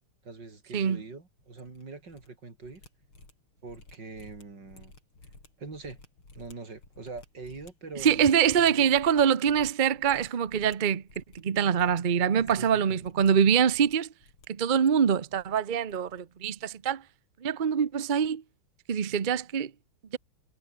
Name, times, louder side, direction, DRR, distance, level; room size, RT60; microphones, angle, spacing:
voice 1, 0.2-2.8 3.6-4.9 5.6-6.0 6.3-8.9 12.6-13.1, right 3 dB, 55° right, 4.6 m, -43 dB
sound 1, 1.4-2.3 2.5-11.5 11.7-12.0 12.3-13.3 13.6-14.5 14.7-15.6 15.9-16.2 16.4-16.7, left 2 dB, 75° left, 8.3 m, -54 dB
voice 2, 8.0-14.1 14.5-17.0 17.4-18.4 18.9-19.7, right 7 dB, 70° right, 0.4 m, -24 dB
omnidirectional pair, 2.4 m